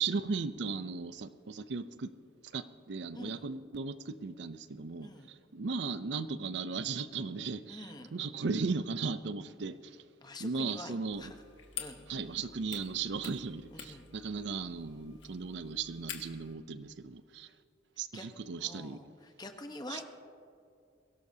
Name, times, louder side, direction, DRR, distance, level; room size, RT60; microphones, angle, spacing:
voice 1, 0.0-2.1 2.5-10.0 10.4-11.3 12.1-17.5 18.0-19.0 19.9-20.0, right 4 dB, 65° right, 0.5 m, -36 dB
voice 2, 5.0-5.3 7.7-8.1 10.2-11.4 11.8-12.1 13.7-14.1 18.1-18.3 18.6-20.0, left 2 dB, 20° left, 1.0 m, -46 dB
sound 1, 11.1-16.5, left 8 dB, 80° left, 1.6 m, -48 dB
22.5 x 17.5 x 2.8 m
head